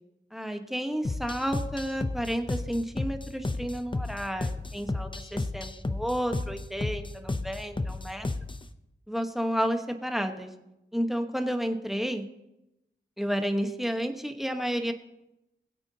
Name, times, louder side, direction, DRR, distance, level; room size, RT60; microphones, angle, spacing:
voice 1, 0.3-8.3 9.1-10.5 10.9-12.2 13.2-14.9, equal, ahead, 6 dB, 1.1 m, -31 dB
sound 1, 1.0-8.7, left 2 dB, 25° left, 0.7 m, -33 dB
21.0 x 8.0 x 2.8 m, 0.90 s
wide cardioid pair, 70°, 20 cm